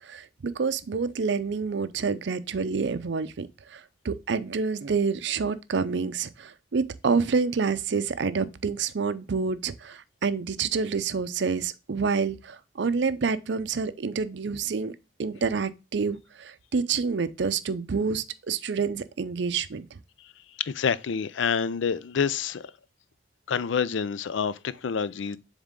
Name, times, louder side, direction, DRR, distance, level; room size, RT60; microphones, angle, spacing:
voice 1, 0.1-14.9 15.2-19.9, right 5 dB, 65° right, 0.5 m, -28 dB
voice 2, 20.6-22.7 23.5-25.4, left 6 dB, 75° left, 0.4 m, -27 dB
7.3 x 3.6 x 3.6 m
head